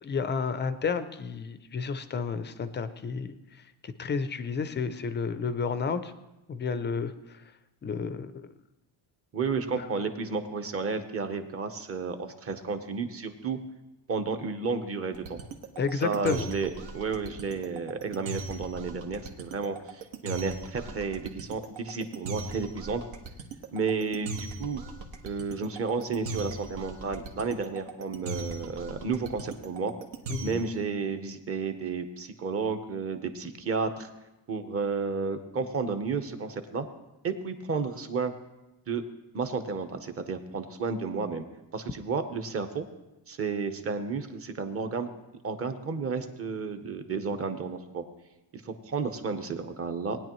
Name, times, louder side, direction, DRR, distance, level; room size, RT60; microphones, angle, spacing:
voice 1, 0.0-6.1 6.5-7.4 7.8-8.5 9.8-9.9 15.8-16.5 30.3-30.6, left 5 dB, 25° left, 11 dB, 0.4 m, -31 dB
voice 2, 9.3-13.6 14.1-15.4 16.0-23.0 23.7-24.9 25.2-29.9 30.4-34.1 34.5-36.9 37.2-38.3 38.9-39.0 39.3-41.4 41.7-42.8 43.3-45.1 45.4-48.0 48.5-50.2, right 5 dB, 30° right, 7 dB, 0.9 m, -32 dB
sound 1, 15.1-30.8, right 3 dB, 80° right, 1.5 m, -39 dB
19.0 x 10.0 x 3.0 m, 0.97 s
cardioid pair, 170°, 45 cm